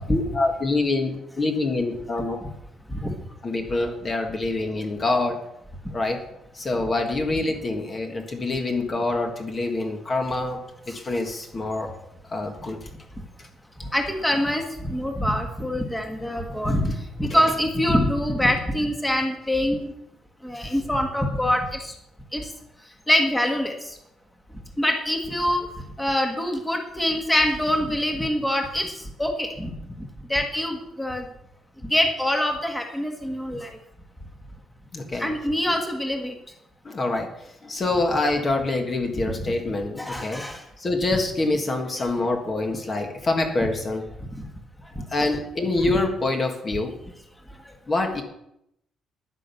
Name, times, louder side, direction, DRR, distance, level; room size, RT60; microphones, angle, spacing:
voice 1, 0.1-2.4 3.4-5.4 5.9-6.2 6.5-10.6 10.9-11.9 12.3-12.8 17.3-17.5 34.9-35.3 36.8-37.3 37.6-40.4 40.8-44.1 45.1-46.9 47.9-48.2, left 2 dB, 25° left, 3 dB, 1.6 m, -25 dB
voice 2, 13.8-19.9 20.4-21.9 22.3-22.5 23.1-24.0 24.8-31.2 31.8-33.8 35.2-36.3 40.0-40.6 44.9-45.0, left 1 dB, 5° left, 3 dB, 1.6 m, -25 dB
10.5 x 9.8 x 7.0 m, 0.79 s
cardioid pair, 165°, 0 cm